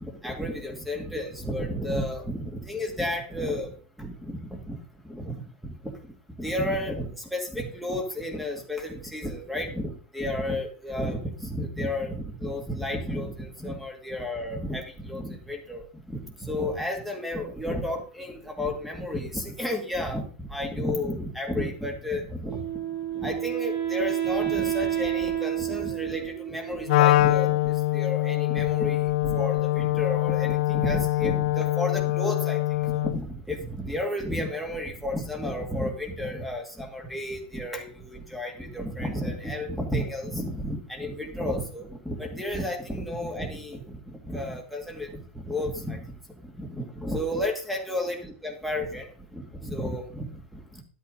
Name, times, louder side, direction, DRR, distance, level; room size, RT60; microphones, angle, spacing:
voice 1, 0.0-4.8 5.1-5.7 6.4-22.6 23.1-45.2 45.5-46.0 46.4-50.6, left 1 dB, ahead, 2 dB, 2.3 m, -32 dB
Wind instrument woodwind instrument, 22.5-27.5, right 11 dB, 85° right, 4.2 m, -30 dB
Wind instrument woodwind instrument 2, 26.9-33.2, left 18 dB, 70° left, 0.5 m, -24 dB
12.0 x 8.3 x 3.9 m, 0.42 s
supercardioid pair, 130°, 5 cm